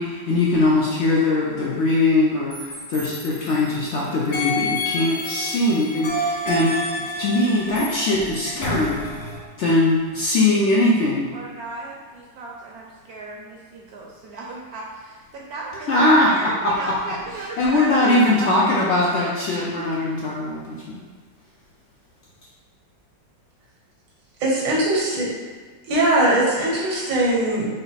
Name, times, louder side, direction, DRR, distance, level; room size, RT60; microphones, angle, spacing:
voice 1, 0.0-6.8 7.2-9.1 9.6-11.3 15.9-16.9 17.6-21.0, left 2 dB, 80° left, -5 dB, 0.6 m, -21 dB
sound 1, 2.5-3.9 4.3-9.4, left 1 dB, 45° left, 0.6 m, -29 dB
voice 2, 11.3-18.9, right 2 dB, 65° right, -2 dB, 1.0 m, -35 dB
voice 3, 24.4-25.3 25.9-27.6, right 1 dB, 90° right, -4 dB, 1.7 m, -20 dB
5.3 x 2.0 x 4.0 m, 1.5 s
omnidirectional pair, 1.9 m